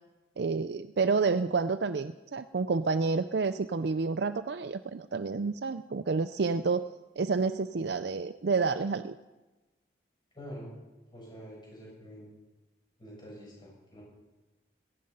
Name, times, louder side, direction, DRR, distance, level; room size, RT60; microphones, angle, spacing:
voice 1, 0.4-6.9 7.2-9.2, right 4 dB, 60° right, 10 dB, 0.5 m, -29 dB
voice 2, 10.3-10.7 11.1-12.3 13.0-14.0, equal, 25° left, -4 dB, 7.7 m, -46 dB
17.0 x 15.5 x 5.5 m, 1.1 s
head